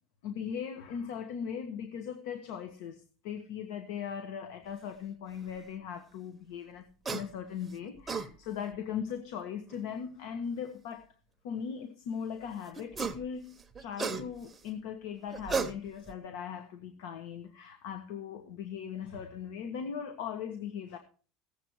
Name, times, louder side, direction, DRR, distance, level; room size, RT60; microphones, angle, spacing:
voice 1, 0.2-11.1 11.4-21.0, left 7 dB, 80° left, 1.3 m, -39 dB
sound 1, 7.1-7.3 7.8-8.3 9.7-9.8 12.8-13.2 13.6-14.6 15.3-16.1, right 5 dB, 10° right, 1.0 m, -34 dB
16.5 x 7.9 x 4.7 m
cardioid pair, 155°, 0 cm